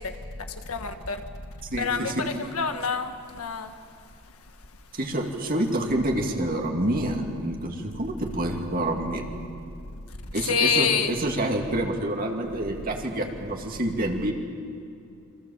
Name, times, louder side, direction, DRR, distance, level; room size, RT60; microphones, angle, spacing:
voice 1, 0.7-1.2 1.8-2.1 2.4-3.1 3.4-3.7 10.5-11.1, left 5 dB, 75° left, 7 dB, 1.6 m, -25 dB
voice 2, 1.7-2.3 4.9-9.2 10.3-14.3, right 1 dB, 40° right, 1 dB, 2.6 m, -27 dB
28.0 x 25.5 x 7.4 m, 2.5 s
head